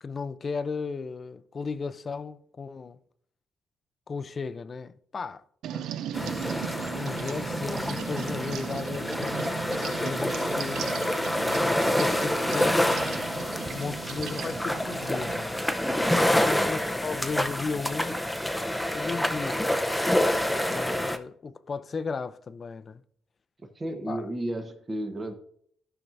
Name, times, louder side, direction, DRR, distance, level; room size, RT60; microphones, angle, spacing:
voice 1, 0.0-3.0 4.1-5.4 5.7-5.9 6.9-10.9 11.9-13.0 13.7-15.6 16.2-18.2 18.9-19.6 20.5-23.0 24.1-24.2, left 5 dB, 40° left, 0.5 m, -35 dB
sound 1, 5.6-15.4, right 10 dB, 80° right, 0.4 m, -37 dB
sound 2, 6.1-21.2, left 1 dB, 5° left, 0.7 m, -27 dB
voice 2, 16.4-16.7 23.6-25.3, right 1 dB, 30° right, 1.2 m, -33 dB
15.0 x 5.9 x 2.6 m
cardioid pair, 90°, 0 cm